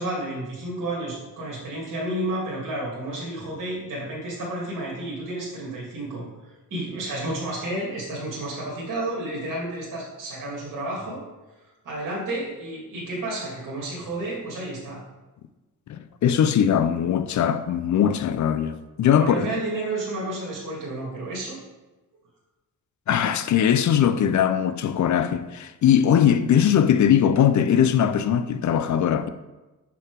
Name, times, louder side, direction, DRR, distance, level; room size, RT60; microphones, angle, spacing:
voice 1, 0.0-6.2 6.7-11.2 11.8-15.0 19.2-21.6, right 1 dB, 65° right, 2.2 m, -31 dB
voice 2, 15.9-19.5 23.1-29.3, left 9 dB, 60° left, 0.5 m, -20 dB
6.0 x 5.9 x 4.6 m
wide cardioid pair, 145°, 33 cm